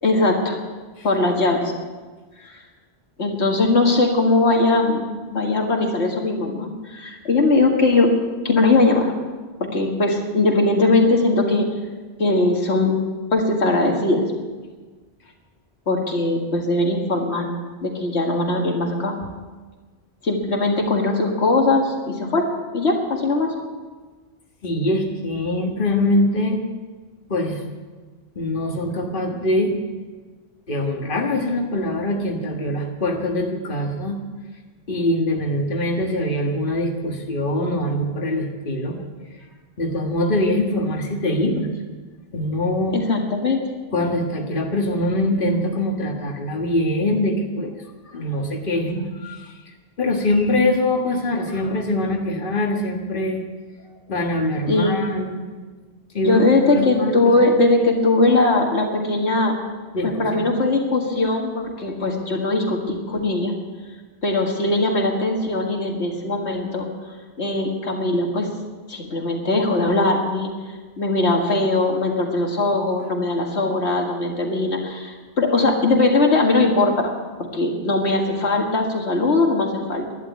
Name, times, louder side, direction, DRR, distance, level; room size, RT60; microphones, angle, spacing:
voice 1, 0.0-0.6 1.0-1.7 2.4-2.6 3.2-5.0 5.3-8.1 8.4-9.1 9.6-11.7 12.2-13.0 13.3-14.2 15.9-17.5 17.8-19.1 20.2-22.5 22.7-23.5 42.9-43.6 54.7-55.0 56.2-59.6 60.2-63.5 64.2-66.9 67.4-68.5 68.9-70.5 71.0-77.1 77.5-80.1, left 2 dB, 90° left, 1 dB, 2.1 m, -20 dB
voice 2, 24.6-26.6 27.3-27.6 28.4-29.8 30.7-34.2 34.9-39.0 39.8-41.7 42.3-43.0 43.9-47.7 48.1-49.5 50.0-53.4 54.1-55.4 56.1-56.4 56.8-57.4 59.9-60.5, left 1 dB, 50° left, 1 dB, 1.8 m, -23 dB
12.0 x 11.0 x 8.4 m, 1.4 s
omnidirectional pair, 1.1 m